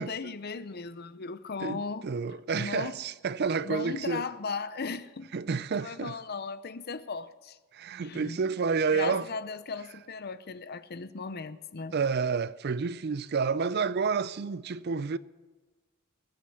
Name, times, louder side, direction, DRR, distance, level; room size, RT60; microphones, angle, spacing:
voice 1, 0.0-2.1 2.5-3.0 3.6-5.3 5.8-7.6 8.0-8.4 8.9-12.0, left 4 dB, 45° left, 0.6 m, -37 dB
voice 2, 1.6-4.2 5.3-6.1 7.7-9.3 11.9-15.2, right 5 dB, 50° right, 0.4 m, -29 dB
21.5 x 8.0 x 7.0 m
head